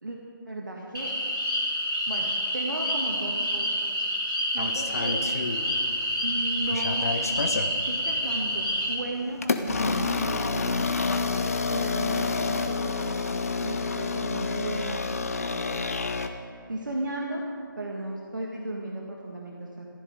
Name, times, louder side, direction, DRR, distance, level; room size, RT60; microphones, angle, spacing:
voice 1, 0.5-1.1 2.1-3.8 4.5-5.2 6.2-7.1 7.8-10.8 11.7-13.3 13.6-15.8 16.7-17.4 17.8-19.9, right 2 dB, 60° right, -1 dB, 1.8 m, -35 dB
sound 1, 0.9-9.0, equal, 65° left, 4.1 m, -28 dB
sound 2, 4.6-6.0 6.4-7.7 8.4-8.6 9.4-16.3, left 4 dB, 45° left, 0.9 m, -28 dB
23.0 x 14.5 x 3.8 m, 2.5 s
figure-of-eight pair, 155°, 12 cm